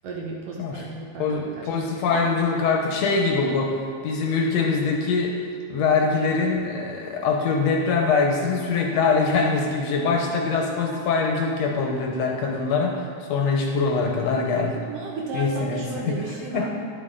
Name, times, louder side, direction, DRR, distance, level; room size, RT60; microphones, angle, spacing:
voice 1, 0.0-1.9 2.1-2.3 14.9-16.7, right 4 dB, 70° right, -1 dB, 1.7 m, -34 dB
voice 2, 1.2-3.8 4.0-5.4 5.7-14.8 15.3-16.2 16.5-16.7, left 4 dB, 70° left, 1 dB, 1.8 m, -23 dB
10.5 x 7.6 x 3.8 m, 2.1 s
omnidirectional pair, 3.4 m